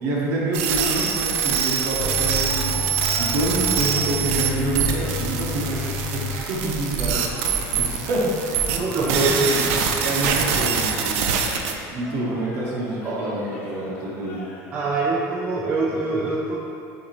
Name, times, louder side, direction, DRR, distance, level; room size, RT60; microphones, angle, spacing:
voice 1, 0.0-2.8 3.2-8.6 9.0-9.6 10.0-11.3 11.9-14.4, right 2 dB, 45° right, -4 dB, 0.8 m, -27 dB
sound 1, 0.5-11.7, right 7 dB, 90° right, 0.4 m, -24 dB
sound 2, 0.7-14.8, left 1 dB, 30° left, 0.7 m, -41 dB
sound 3, 2.0-9.6, left 2 dB, 55° left, 0.4 m, -32 dB
voice 2, 8.7-9.5 13.0-13.3 14.7-16.6, right 3 dB, 25° right, -6 dB, 0.4 m, -24 dB
6.6 x 2.6 x 3.0 m, 2.5 s
cardioid pair, 170°, 7 cm